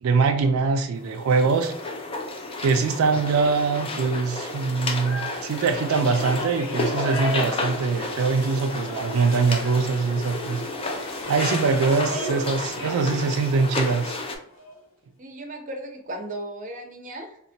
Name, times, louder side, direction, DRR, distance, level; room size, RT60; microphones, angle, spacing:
voice 1, 0.0-1.7 2.6-10.6 11.3-14.2, right 4 dB, 90° right, 5 dB, 0.4 m, -23 dB
sound 1, 0.9-14.4, left 2 dB, 25° left, 0.4 m, -32 dB
sound 2, 5.0-14.8, left 1 dB, 75° left, 1.1 m, -37 dB
voice 2, 15.2-17.4, right 1 dB, 40° right, 2 dB, 0.6 m, -36 dB
3.8 x 2.1 x 2.7 m, 0.69 s
head